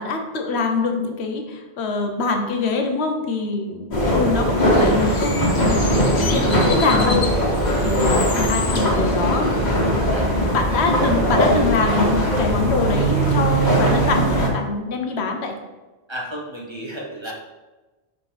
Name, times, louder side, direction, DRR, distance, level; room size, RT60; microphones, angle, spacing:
voice 1, 0.0-7.5 7.8-15.5, left 4 dB, 80° left, 4 dB, 1.0 m, -24 dB
sound 1, 3.9-14.5, equal, 45° left, 1.5 m, -20 dB
Bird, 4.6-9.6, left 4 dB, 65° left, 1.0 m, -32 dB
voice 2, 8.0-8.4 10.0-10.3 16.1-17.3, right 1 dB, 25° right, -3 dB, 1.1 m, -33 dB
6.0 x 5.1 x 3.3 m, 1.2 s
omnidirectional pair, 1.1 m